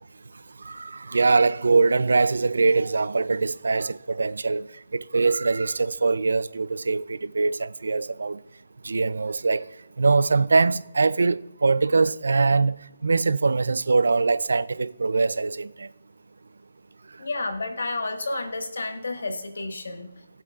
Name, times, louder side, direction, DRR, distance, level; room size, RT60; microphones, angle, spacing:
voice 1, 0.7-4.7 4.9-8.4 8.8-9.6 10.0-12.8 13.0-15.9, right 4 dB, 80° right, 0.4 m, -22 dB
voice 2, 17.2-20.1, left 2 dB, 80° left, 1.6 m, -31 dB
19.0 x 7.7 x 2.4 m
hypercardioid pair, 165°, 0 cm